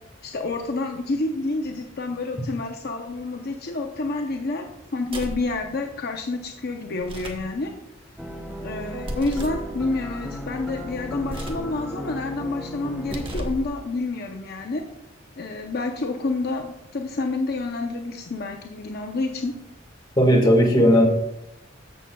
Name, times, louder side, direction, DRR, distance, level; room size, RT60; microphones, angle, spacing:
voice 1, 0.2-4.7 4.9-7.7 8.6-14.8 15.4-19.5, left 3 dB, 55° left, 3 dB, 0.7 m, -28 dB
sound 1, 5.1-5.5 7.0-7.5 9.0-9.7 11.2-11.7 13.0-13.7, right 1 dB, 30° right, 1.1 m, -33 dB
sound 2, 8.2-13.4, equal, ahead, 0.6 m, -35 dB
voice 2, 20.2-21.1, equal, 20° left, 0 dB, 1.7 m, -16 dB
14.0 x 6.6 x 2.3 m, 0.84 s
head